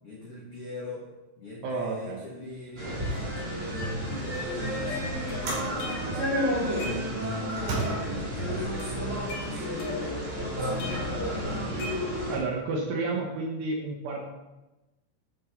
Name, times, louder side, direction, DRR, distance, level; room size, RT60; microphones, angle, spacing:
voice 1, 0.0-1.1 1.4-6.8 7.2-11.8, left 1 dB, 80° left, -6 dB, 1.3 m, -42 dB
voice 2, 1.6-2.2 7.5-8.1 10.9-11.0 12.3-14.3, right 3 dB, 75° right, 1 dB, 2.7 m, -32 dB
sound 1, 2.5-2.7 3.1-3.3 4.3-4.5 5.4-5.8 6.6-6.7 7.5-7.8, right 4 dB, 60° right, 4.0 m, -34 dB
sound 2, 2.7-12.4, equal, 35° right, 1.2 m, -31 dB
sound 3, 4.8-6.2 6.6-7.4 7.8-8.3 8.6-10.4 10.8-12.4, left 2 dB, 60° left, 2.0 m, -40 dB
10.5 x 6.2 x 3.8 m, 1.1 s
omnidirectional pair, 5.8 m